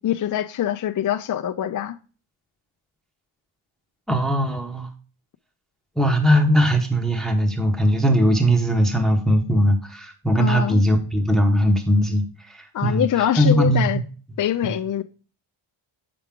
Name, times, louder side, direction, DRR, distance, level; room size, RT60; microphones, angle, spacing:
voice 1, 0.0-2.0 10.4-10.8 12.7-14.0 14.4-15.0, left 10 dB, 40° left, 0.4 m, -24 dB
voice 2, 4.1-4.9 6.0-13.1 13.4-13.9, equal, ahead, 0.9 m, -19 dB
8.0 x 5.8 x 3.6 m
wide cardioid pair, 155°, 50 cm